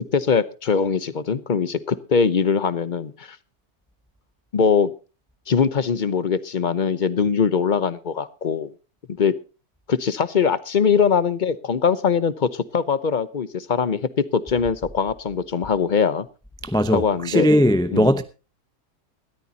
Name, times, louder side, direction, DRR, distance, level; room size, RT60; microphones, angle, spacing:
voice 1, 0.1-3.4 4.5-4.9 5.5-8.7 9.2-9.3 9.9-16.3 16.9-17.5 17.9-18.1, left 6 dB, 40° left, 0.7 m, -22 dB
voice 2, 16.6-18.2, equal, 5° left, 0.4 m, -19 dB
19.5 x 13.5 x 2.8 m
omnidirectional pair, 1.7 m